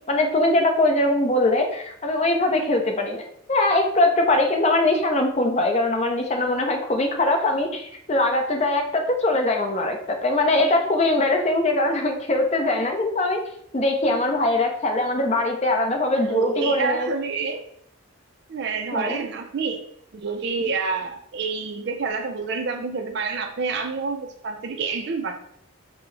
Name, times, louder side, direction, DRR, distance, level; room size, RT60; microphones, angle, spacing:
voice 1, 0.1-13.4 13.7-17.1 18.9-19.2, left 2 dB, 30° left, 3 dB, 0.6 m, -22 dB
voice 2, 16.1-17.6 18.5-19.8 20.1-25.4, right 4 dB, 50° right, 4 dB, 0.4 m, -28 dB
4.5 x 2.1 x 3.9 m, 0.70 s
head